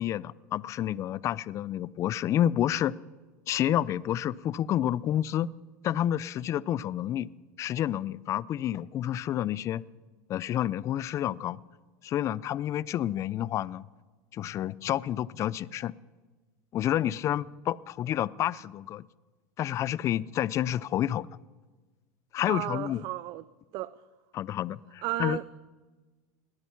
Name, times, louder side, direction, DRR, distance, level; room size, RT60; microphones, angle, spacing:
voice 1, 0.0-2.9 3.5-5.5 5.8-7.3 7.6-9.8 10.3-11.6 12.0-13.9 14.3-15.9 16.7-19.1 19.6-21.3 22.3-23.0 24.3-25.4, left 11 dB, 35° left, 22 dB, 0.4 m, -29 dB
voice 2, 22.5-23.4 23.7-23.9 25.0-25.4, right 18 dB, 50° right, 17 dB, 0.4 m, -33 dB
20.5 x 8.9 x 5.8 m, 1.3 s
supercardioid pair, 125°, 9 cm